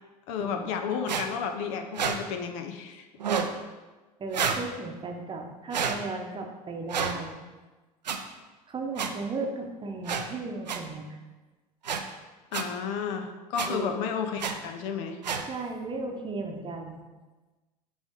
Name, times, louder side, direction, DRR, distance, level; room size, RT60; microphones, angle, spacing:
voice 1, 0.3-3.1 12.5-15.2, left 6 dB, 50° left, 6 dB, 0.6 m, -32 dB
sound 1, 1.1-1.2 1.9-2.2 3.2-3.5 4.3-4.6 5.7-6.0 6.9-7.1 8.1-8.2 9.0-9.1 10.1-10.2 10.7-10.8 11.8-12.0 12.5-12.6 13.6-13.7 14.4-14.5 15.2-15.4, right 6 dB, 80° right, 0.5 m, -28 dB
voice 2, 4.2-7.3 8.7-11.2 13.7-14.0 15.5-17.0, right 3 dB, 25° right, 2 dB, 0.9 m, -35 dB
6.1 x 3.5 x 5.4 m, 1.2 s
figure-of-eight pair, 75°, 21 cm